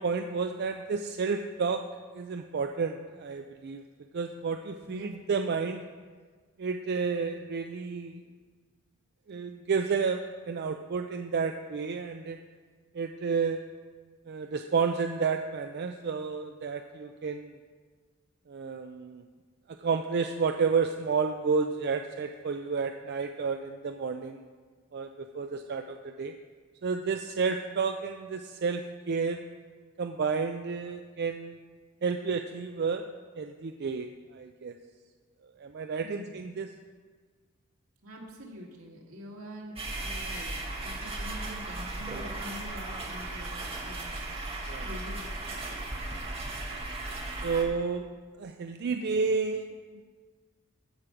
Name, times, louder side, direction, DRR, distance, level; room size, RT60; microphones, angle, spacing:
voice 1, 0.0-1.8 2.1-3.8 4.1-5.8 6.6-8.2 9.3-12.4 12.9-13.6 14.3-17.5 18.5-19.2 19.8-24.4 24.9-26.3 26.8-29.4 30.0-31.6 32.0-33.1 33.4-34.7 35.6-36.7 44.7-44.9 46.1-46.2 47.4-48.1 48.4-49.7, right 5 dB, 50° right, 6 dB, 0.4 m, -31 dB
voice 2, 4.8-5.1 36.0-36.4 38.0-40.5 40.8-44.3 44.8-45.5, equal, 80° right, -2 dB, 2.1 m, -45 dB
sound 1, 39.8-47.6, right 2 dB, 30° right, 1.5 m, -36 dB
14.5 x 4.9 x 5.9 m, 1.5 s
head